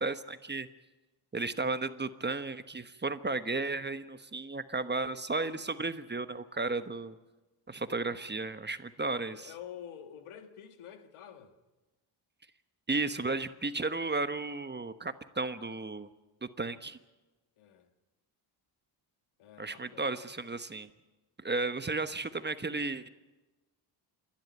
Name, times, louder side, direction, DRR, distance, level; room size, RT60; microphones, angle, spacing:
voice 1, 0.0-0.7 1.3-7.2 7.7-9.5 12.9-16.1 16.4-17.0 19.6-20.9 21.4-23.1, right 3 dB, 20° right, 1.2 m, -34 dB
voice 2, 9.3-11.5 17.6-17.9 19.4-20.2, left 9 dB, 90° left, 1.8 m, -48 dB
27.0 x 11.5 x 9.4 m
cardioid pair, 65°, 48 cm